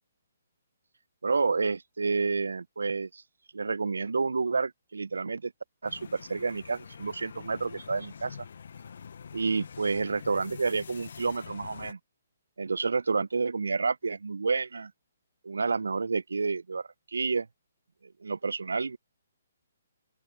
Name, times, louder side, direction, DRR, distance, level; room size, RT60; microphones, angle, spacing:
voice 1, 1.2-3.2 3.5-5.5 5.8-8.4 9.3-12.0 12.6-14.9 15.4-17.5 18.2-19.0, right 4 dB, 75° right, 1.1 m, -29 dB
sound 1, 5.8-11.9, left 6 dB, 60° left, 1.3 m, -45 dB
open air
figure-of-eight pair, 135°, 0 cm